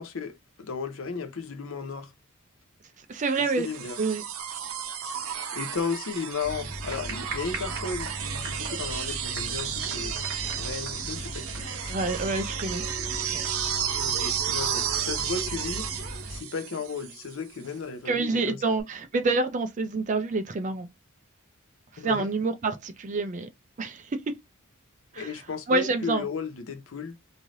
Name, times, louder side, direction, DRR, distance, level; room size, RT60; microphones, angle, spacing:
voice 1, 0.0-2.1 3.4-4.0 5.5-12.3 13.9-15.9 16.3-18.8 22.0-22.3 25.2-27.2, left 5 dB, 65° left, 0.6 m, -35 dB
voice 2, 3.1-3.7 4.0-4.2 11.9-12.8 13.3-13.4 18.1-20.9 22.0-23.5 23.8-24.1 25.1-25.3 25.7-26.2, right 3 dB, 35° right, 0.4 m, -27 dB
sound 1, 3.3-17.3 18.8-18.9, right 9 dB, 80° right, 0.6 m, -33 dB
sound 2, 6.4-16.4, right 1 dB, 55° right, 1.3 m, -37 dB
Bell, 12.7-17.7, right 7 dB, 5° left, 1.3 m, -47 dB
3.1 x 2.6 x 2.5 m
head